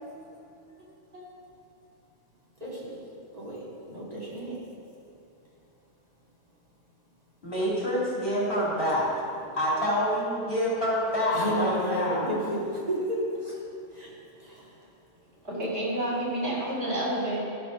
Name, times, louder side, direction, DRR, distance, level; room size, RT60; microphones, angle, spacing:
voice 1, 2.6-3.0 3.3-4.6 11.3-13.6 13.9-14.1 14.4-14.7, equal, 35° right, -7 dB, 2.5 m, -31 dB
voice 2, 7.4-9.1 9.6-12.3, equal, 50° left, -7 dB, 3.2 m, -27 dB
voice 3, 15.4-17.4, right 1 dB, 65° right, -7 dB, 3.4 m, -29 dB
12.5 x 6.7 x 6.1 m, 2.7 s
omnidirectional pair, 1.2 m